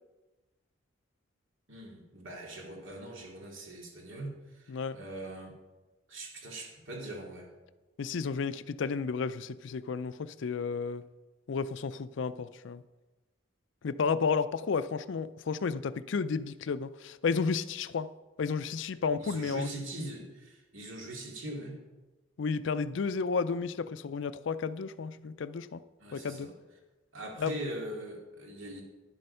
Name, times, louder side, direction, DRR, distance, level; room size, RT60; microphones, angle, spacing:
voice 1, 1.7-5.5 6.1-7.5 19.2-21.8 26.0-26.5 27.1-28.8, right 1 dB, 75° right, 2.4 m, -41 dB
voice 2, 8.0-11.0 11.5-12.8 13.8-18.1 18.4-19.7 22.4-25.8 26.1-26.5 27.4-27.5, left 5 dB, 65° left, 0.4 m, -32 dB
10.5 x 7.6 x 5.6 m
head